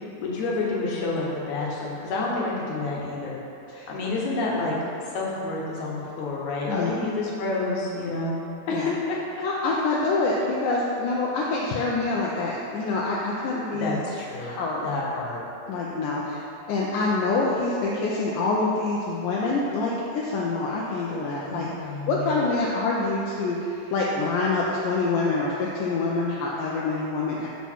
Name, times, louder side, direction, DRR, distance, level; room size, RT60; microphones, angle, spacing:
voice 1, 0.2-3.4 3.9-4.8 5.0-8.4 8.7-9.2 13.8-14.6 14.8-15.4 21.5-22.4, left 3 dB, 65° left, -4 dB, 2.3 m, -29 dB
voice 2, 6.7-7.0 8.7-8.9 9.4-14.0 14.4-14.9 15.7-21.7 22.1-27.5, left 3 dB, 80° left, -4 dB, 2.1 m, -26 dB
6.8 x 6.2 x 4.5 m, 2.9 s
omnidirectional pair, 4.1 m